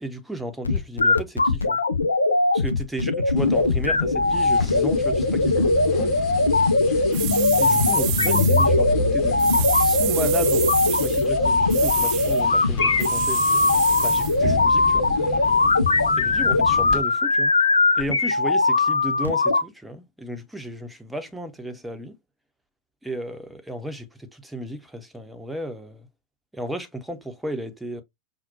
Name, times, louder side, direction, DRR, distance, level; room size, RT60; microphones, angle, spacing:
voice 1, 0.0-1.8 2.5-5.7 7.6-13.4 14.0-15.1 16.2-17.5 18.0-22.1 23.0-26.1 26.5-28.0, right 1 dB, 5° right, 0.7 m, -34 dB
sound 1, 0.6-19.6, left 3 dB, 80° left, 0.5 m, -20 dB
sound 2, 3.4-17.0, left 3 dB, 30° left, 1.4 m, -30 dB
sound 3, 7.1-8.7 9.4-11.3 11.7-12.4 13.0-14.4, right 15 dB, 45° right, 0.3 m, -29 dB
5.7 x 2.3 x 2.7 m
figure-of-eight pair, 90°, 0 cm